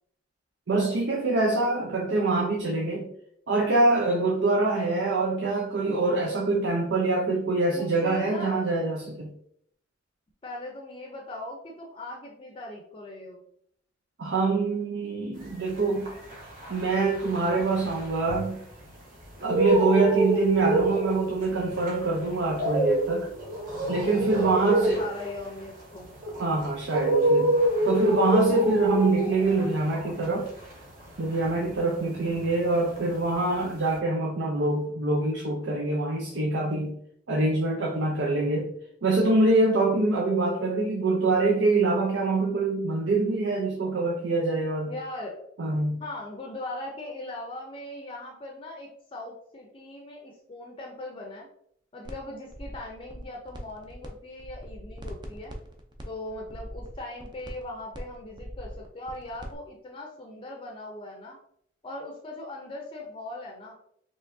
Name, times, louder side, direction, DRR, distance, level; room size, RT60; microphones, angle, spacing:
voice 1, 0.7-3.1 3.5-9.3 14.2-16.1 16.7-18.6 19.4-23.3 23.9-25.1 26.4-27.5 27.8-30.5 31.2-37.0 37.3-38.7 39.0-44.9 45.6-46.0, right 3 dB, 75° right, 0 dB, 0.6 m, -25 dB
voice 2, 7.7-8.6 10.4-13.4 24.0-26.1 44.9-45.4 46.0-51.5 51.9-55.5 56.1-61.4 61.8-63.7, left 2 dB, 30° left, 0 dB, 0.5 m, -39 dB
sound 1, 15.6-18.9 19.2-32.6 32.9-34.0, right 1 dB, 50° right, 1.2 m, -27 dB
sound 2, 52.1-52.2 52.5-54.1 54.4-59.6, equal, 25° right, 0.5 m, -42 dB
4.4 x 3.0 x 2.6 m, 0.69 s
head